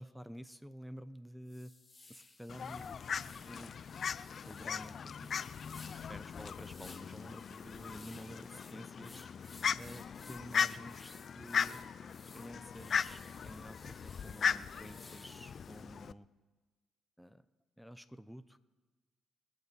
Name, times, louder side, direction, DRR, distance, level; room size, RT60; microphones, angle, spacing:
voice 1, 0.0-1.7 2.1-3.1 3.4-3.7 4.4-5.4 5.9-9.3 9.8-11.8 12.3-16.3 17.2-17.4 17.8-18.6, equal, ahead, 13 dB, 0.6 m, -50 dB
sound 1, 1.0-1.1 1.5-15.8, left 3 dB, 25° left, 2.5 m, -58 dB
Fowl, 2.5-16.1, left 7 dB, 50° left, 0.4 m, -38 dB
27.0 x 9.6 x 4.1 m, 1.3 s
cardioid pair, 90°, 0 cm